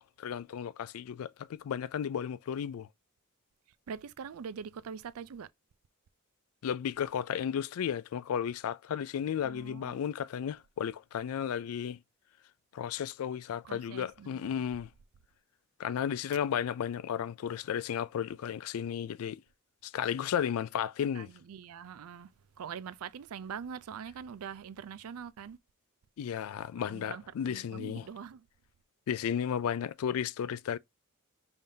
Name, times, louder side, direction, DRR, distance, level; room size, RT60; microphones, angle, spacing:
voice 1, 0.2-2.9 6.6-12.0 12.7-14.9 15.8-19.4 19.8-21.3 26.2-28.0 29.1-30.8, left 8 dB, 80° left, 0.3 m, -34 dB
voice 2, 3.9-5.5 9.4-10.0 13.6-14.7 21.1-22.3 22.6-25.6 26.8-28.5, right 7 dB, 85° right, 0.4 m, -43 dB
5.3 x 3.4 x 2.7 m
head